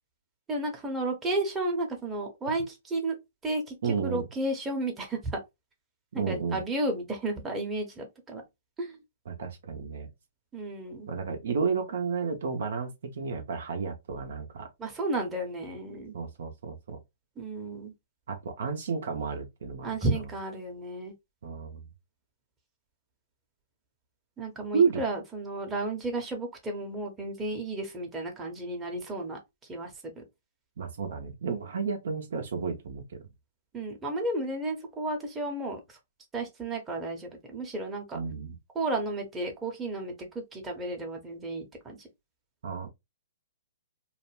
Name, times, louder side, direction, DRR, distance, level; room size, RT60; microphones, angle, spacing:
voice 1, 0.5-3.2 3.4-5.4 6.1-8.4 8.8-9.0 10.5-11.1 14.8-16.1 17.4-17.9 19.8-21.1 24.4-29.4 29.7-30.2 33.7-36.0 36.3-38.2 38.7-40.1 40.5-42.1, right 2 dB, 15° right, 0.8 m, -33 dB
voice 2, 3.8-4.3 6.1-6.6 9.3-10.1 11.1-14.7 16.1-17.0 18.3-19.9 21.4-21.8 24.7-25.0 30.8-33.2 38.1-38.6 42.6-42.9, right 5 dB, 60° right, 0.6 m, -31 dB
2.4 x 2.1 x 3.1 m
figure-of-eight pair, 120°, 0 cm